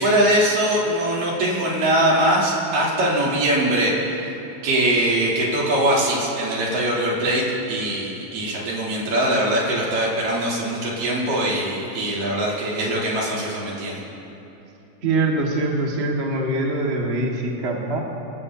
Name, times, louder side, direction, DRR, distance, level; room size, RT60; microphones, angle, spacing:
voice 1, 0.0-4.2 4.6-14.0, right 1 dB, 75° right, -5 dB, 4.7 m, -22 dB
voice 2, 15.0-18.0, right 2 dB, 30° right, -1 dB, 1.1 m, -23 dB
27.0 x 14.5 x 2.8 m, 3.0 s
omnidirectional pair, 3.9 m